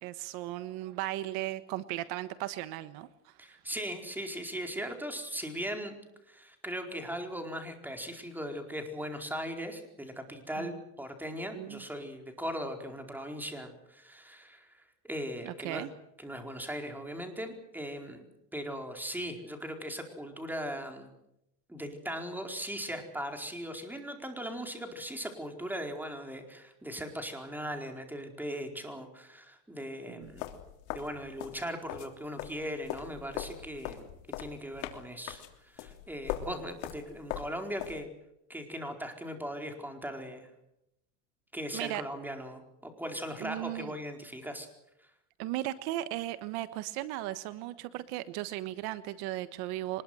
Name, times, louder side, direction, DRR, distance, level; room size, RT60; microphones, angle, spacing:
voice 1, 0.0-3.3 10.6-10.8 11.5-11.8 15.4-15.9 30.1-30.3 41.7-42.0 43.4-43.9 45.4-50.0, right 15 dB, 70° right, 13 dB, 1.4 m, -36 dB
voice 2, 3.4-6.0 6.3-15.9 16.2-18.2 18.5-21.1 21.7-30.5 30.9-34.1 34.4-38.1 38.5-40.5 41.5-44.7, equal, 5° right, 4 dB, 4.5 m, -39 dB
sound 1, 30.2-32.1 32.4-38.0, left 12 dB, 85° left, 3.3 m, -40 dB
24.5 x 21.0 x 8.0 m, 0.82 s
cardioid pair, 130°, 38 cm